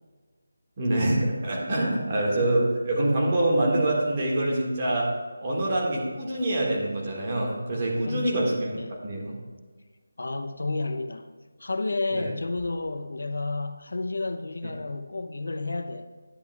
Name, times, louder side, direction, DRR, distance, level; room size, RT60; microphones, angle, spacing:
voice 1, 0.8-5.1 5.4-8.7 9.0-9.4 12.1-12.3, right 1 dB, 25° right, -3 dB, 1.8 m, -25 dB
voice 2, 8.1-8.5 8.8-9.0 10.2-11.3 11.6-16.1, left 3 dB, 75° left, 8 dB, 0.6 m, -31 dB
10.5 x 9.9 x 2.3 m, 1.4 s
figure-of-eight pair, 175°, 0 cm